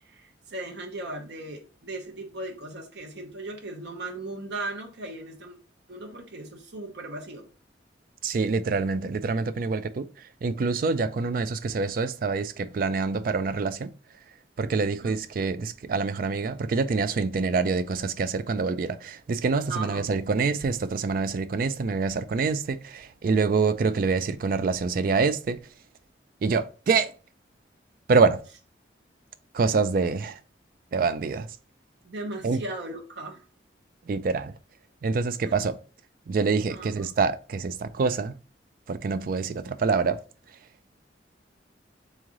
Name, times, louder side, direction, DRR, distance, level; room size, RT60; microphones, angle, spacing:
voice 1, 0.0-5.6 5.9-7.5 15.0-15.2 19.7-20.1 32.0-33.4 35.4-35.5 36.7-36.9, right 2 dB, 70° right, 0.7 m, -37 dB
voice 2, 8.2-13.9 14.6-25.6 26.4-27.1 28.1-28.4 29.5-30.4 30.9-31.5 32.4-32.6 34.1-34.5 35.0-35.8 36.3-38.3 38.9-40.2, right 4 dB, 50° right, 0.3 m, -26 dB
3.6 x 3.2 x 3.7 m
head